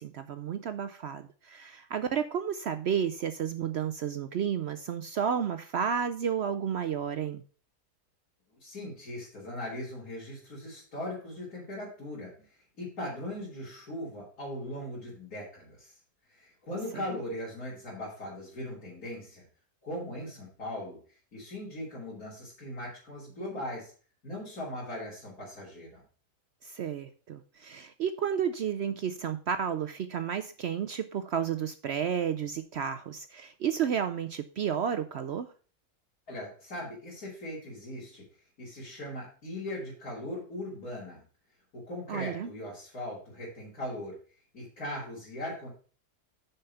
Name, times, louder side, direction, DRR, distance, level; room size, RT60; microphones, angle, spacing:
voice 1, 0.0-7.4 16.9-17.0 26.6-35.5 42.1-42.5, right 8 dB, 75° right, 10 dB, 0.6 m, -32 dB
voice 2, 8.6-15.9 16.3-19.4 19.8-23.9 24.2-26.0 36.3-38.3 38.6-41.2 41.7-44.2 44.5-45.7, left 1 dB, 60° left, -7 dB, 3.7 m, -39 dB
6.9 x 5.7 x 6.6 m, 0.40 s
omnidirectional pair, 1.7 m